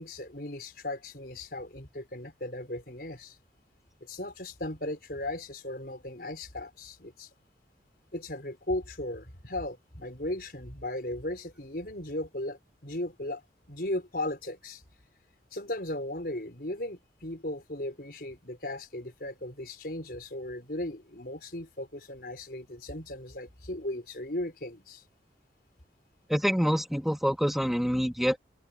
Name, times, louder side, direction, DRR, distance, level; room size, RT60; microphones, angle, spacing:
voice 1, 0.0-3.4 4.0-7.3 8.1-13.4 13.7-14.8 15.5-25.0, left 1 dB, 55° left, 5.5 m, -36 dB
voice 2, 26.3-28.4, equal, ahead, 2.7 m, -26 dB
head